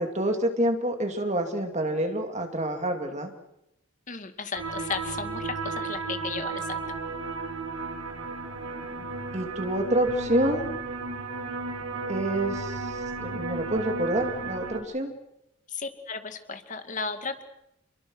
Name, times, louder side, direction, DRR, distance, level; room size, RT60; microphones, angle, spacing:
voice 1, 0.0-3.3 8.5-9.1 9.3-10.7 12.1-15.1, right 1 dB, 35° right, 5 dB, 2.5 m, -28 dB
voice 2, 4.1-6.8 15.7-17.4, left 5 dB, 40° left, 8 dB, 2.2 m, -35 dB
sound 1, 4.5-14.8, right 3 dB, 90° right, 3.8 m, -34 dB
28.5 x 22.5 x 6.3 m, 0.86 s
head